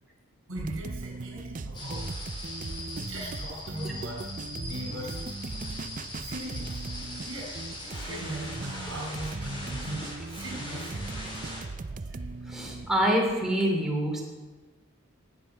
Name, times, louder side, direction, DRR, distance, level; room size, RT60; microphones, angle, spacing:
voice 1, 0.5-2.2 3.0-4.2 4.6-5.2 6.2-6.8 7.2-12.3, right 1 dB, 80° right, -2 dB, 4.8 m, -39 dB
sound 1, 0.6-13.1, right 3 dB, 40° right, 0.5 m, -38 dB
sound 2, 1.7-11.6, left 1 dB, 25° left, 4.6 m, -41 dB
voice 2, 12.5-14.2, equal, ahead, -2 dB, 2.9 m, -26 dB
19.0 x 8.8 x 5.7 m, 1.3 s
head